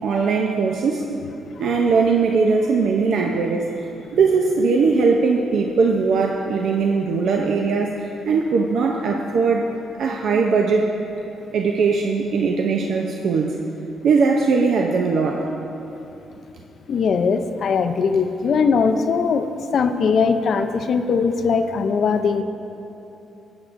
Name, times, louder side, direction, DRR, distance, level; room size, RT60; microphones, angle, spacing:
voice 1, 0.0-1.1 1.6-3.7 4.1-9.7 10.0-11.0 11.5-13.6 14.0-15.5, right 4 dB, 70° right, 1 dB, 0.5 m, -20 dB
voice 2, 16.9-19.5 19.7-22.4, left 5 dB, 60° left, 8 dB, 0.5 m, -20 dB
15.5 x 7.9 x 2.6 m, 2.9 s
cardioid pair, 90°, 0 cm